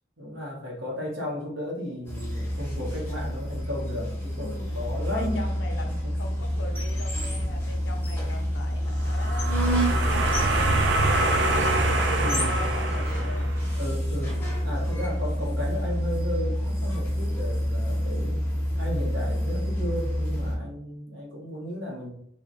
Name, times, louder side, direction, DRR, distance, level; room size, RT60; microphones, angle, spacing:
voice 1, 0.2-5.9 12.2-12.6 13.8-18.4 18.8-22.1, left 1 dB, 80° right, -3 dB, 1.1 m, -34 dB
sound 1, 2.0-20.6, equal, 10° left, 0.6 m, -28 dB
voice 2, 4.4-9.7 10.0-13.5, left 2 dB, 65° left, 4 dB, 0.6 m, -41 dB
sound 2, 9.0-13.8, right 2 dB, 60° right, 0.4 m, -26 dB
3.2 x 2.1 x 3.9 m, 0.70 s
head